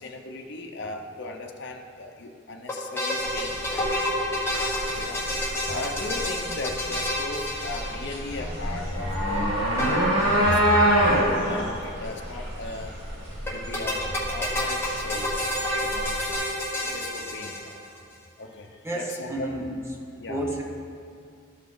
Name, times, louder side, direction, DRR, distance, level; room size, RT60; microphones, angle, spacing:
voice 1, 0.0-4.1 4.9-5.2 5.7-9.5 9.8-10.1 10.4-11.1 11.4-13.0 13.5-16.1 16.9-17.8 18.4-19.6 20.2-20.4, left 2 dB, 60° left, 2 dB, 0.7 m, -37 dB
sound 1, 2.7-8.5 9.8-10.6 10.9-11.0 11.2-11.3 13.5-18.0, left 1 dB, 10° left, 1.4 m, -29 dB
sound 2, 3.2-16.3, equal, 70° right, 2.4 m, -27 dB
voice 2, 18.8-19.7 20.3-20.6, right 1 dB, 15° right, -1 dB, 1.0 m, -30 dB
12.5 x 5.6 x 3.9 m, 2.4 s
head